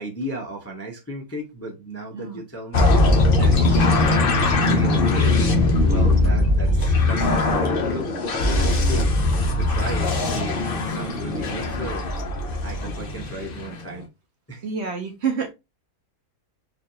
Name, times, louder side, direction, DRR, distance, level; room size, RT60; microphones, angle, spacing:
voice 1, 0.0-2.9 3.3-5.4 5.8-9.1 9.6-12.1 12.6-14.1 14.5-14.7, right 1 dB, 15° left, 0.5 m, -34 dB
sound 1, 2.7-13.9, left 2 dB, 45° left, 0.8 m, -20 dB
voice 2, 14.6-15.5, right 6 dB, 55° right, 0.8 m, -27 dB
4.2 x 2.6 x 2.7 m
omnidirectional pair, 1.6 m